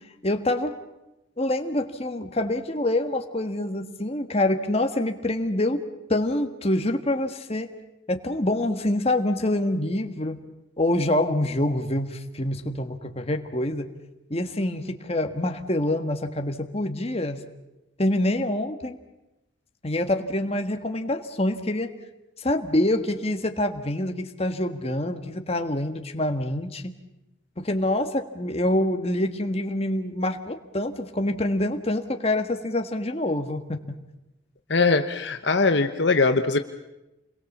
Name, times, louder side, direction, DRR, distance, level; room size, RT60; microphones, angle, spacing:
voice 1, 0.2-0.7 1.4-5.8 6.1-7.7 8.1-10.4 10.8-13.9 14.3-17.4 18.0-19.0 19.8-21.9 22.4-26.9 27.6-34.0, left 1 dB, 30° left, 6 dB, 1.5 m, -26 dB
voice 2, 34.7-36.6, left 3 dB, 55° left, 7 dB, 1.0 m, -21 dB
28.5 x 22.0 x 7.3 m, 0.98 s
head